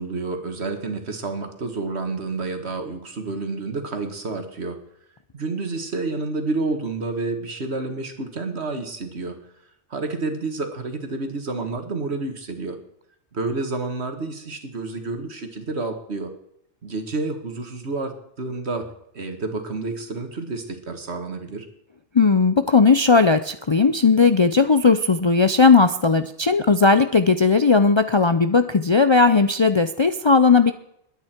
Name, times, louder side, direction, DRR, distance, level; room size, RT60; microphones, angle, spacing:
voice 1, 0.0-4.8 5.3-9.4 9.9-12.8 13.3-16.3 16.8-18.9 19.1-21.7, right 3 dB, 70° right, 6 dB, 2.0 m, -29 dB
voice 2, 22.1-30.7, left 4 dB, 40° left, 10 dB, 0.4 m, -17 dB
21.5 x 9.4 x 4.5 m, 0.74 s
omnidirectional pair, 1.2 m